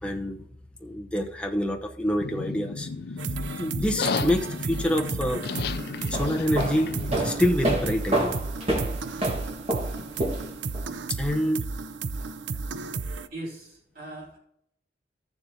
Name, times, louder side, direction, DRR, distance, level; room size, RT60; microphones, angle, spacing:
voice 1, 0.0-0.4 0.8-2.9 3.5-5.4 6.1-6.9 7.2-8.4 11.1-11.7, equal, 5° left, 0 dB, 0.8 m, -26 dB
sound 1, 2.2-7.2, left 4 dB, 55° left, 0.5 m, -33 dB
sound 2, 3.2-13.3, right 4 dB, 80° right, 0.5 m, -33 dB
sound 3, 6.0-10.8, right 1 dB, 30° right, 1.5 m, -28 dB
voice 2, 13.3-14.4, right 1 dB, 50° right, -3 dB, 2.7 m, -40 dB
15.0 x 7.2 x 2.8 m, 0.71 s
head